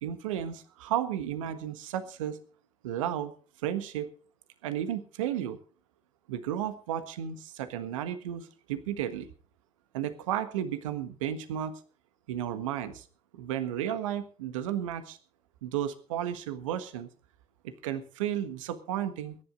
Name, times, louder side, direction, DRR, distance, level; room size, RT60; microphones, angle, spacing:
voice 1, 0.0-2.4 2.8-3.3 3.6-4.1 4.6-5.6 6.3-9.3 9.9-11.8 12.3-13.1 13.3-15.2 15.6-17.1 17.6-19.3, right 10 dB, 80° right, 11 dB, 1.4 m, -33 dB
22.0 x 11.0 x 3.9 m, 0.39 s
hypercardioid pair, 55°, 16 cm